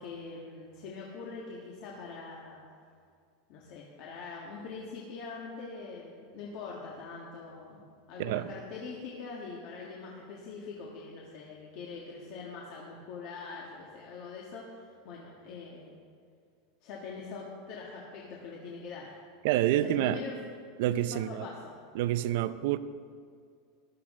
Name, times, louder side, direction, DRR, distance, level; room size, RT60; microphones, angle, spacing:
voice 1, 0.0-2.6 3.5-15.9 16.8-19.2 19.7-20.4 20.9-21.7, left 4 dB, 50° left, -3 dB, 1.6 m, -43 dB
voice 2, 19.4-20.2 20.8-21.5 21.9-22.8, right 13 dB, 60° right, 14 dB, 0.5 m, -28 dB
14.5 x 12.0 x 3.7 m, 2.2 s
supercardioid pair, 160°, 0 cm